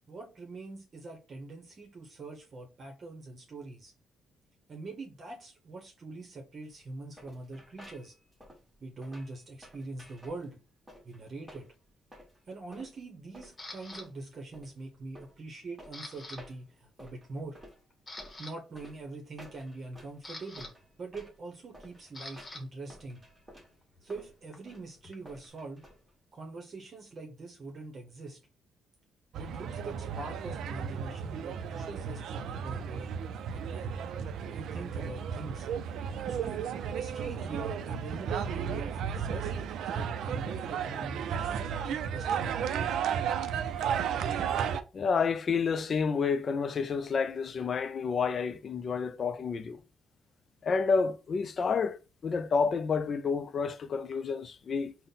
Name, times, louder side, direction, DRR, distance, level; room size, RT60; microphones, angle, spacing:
voice 1, 0.1-3.9 4.7-8.1 8.8-10.6 11.0-11.7 12.5-17.6 18.4-20.7 21.0-23.2 24.0-25.8 26.3-28.4 29.3-33.1 33.5-33.9 34.5-35.7 36.3-36.7 37.0-42.6, right 3 dB, 45° right, 0.8 m, -43 dB
sound 1, 6.7-26.3, equal, 10° right, 1.3 m, -54 dB
Camera, 13.6-14.0 14.6-15.0 15.3-16.4 16.7-16.9 17.4-17.5 17.9-18.5 19.7-22.6 22.9-25.5, left 2 dB, 30° left, 1.1 m, -47 dB
sound 2, 29.3-44.8, right 7 dB, 75° right, 0.3 m, -34 dB
voice 2, 44.9-49.8 50.6-55.1, left 5 dB, 45° left, 0.3 m, -29 dB
3.8 x 2.1 x 3.9 m
cardioid pair, 85°, 0 cm